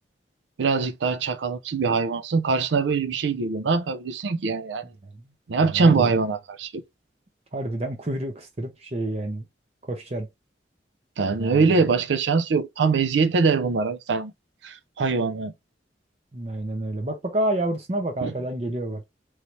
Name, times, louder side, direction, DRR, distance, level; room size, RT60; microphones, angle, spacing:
voice 1, 0.6-4.8 5.5-6.8 11.2-14.3 14.6-15.5 18.2-18.3, right 4 dB, 80° right, 0.5 m, -23 dB
voice 2, 5.6-6.2 7.5-9.5 9.8-10.3 11.3-11.6 16.3-19.0, right 1 dB, 35° right, 0.6 m, -29 dB
3.2 x 2.7 x 2.9 m
head